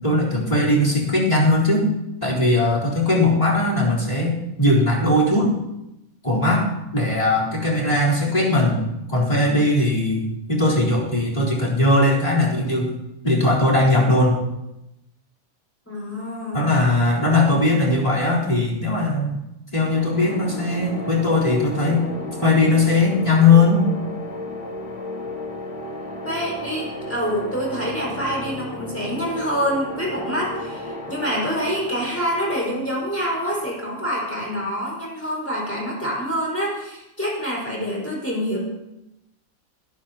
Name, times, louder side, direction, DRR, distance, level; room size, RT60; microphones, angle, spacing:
voice 1, 0.0-1.9 2.2-5.5 6.2-8.8 9.1-12.9 13.2-14.4 16.5-19.4 19.7-22.0 22.4-23.9, left 2 dB, 25° left, -6 dB, 4.1 m, -19 dB
voice 2, 15.8-16.7 26.2-38.6, equal, 10° left, -4 dB, 5.1 m, -26 dB
sound 1, 19.8-34.5, left 2 dB, 55° left, 2.1 m, -34 dB
21.0 x 14.0 x 3.0 m, 0.89 s
omnidirectional pair, 1.5 m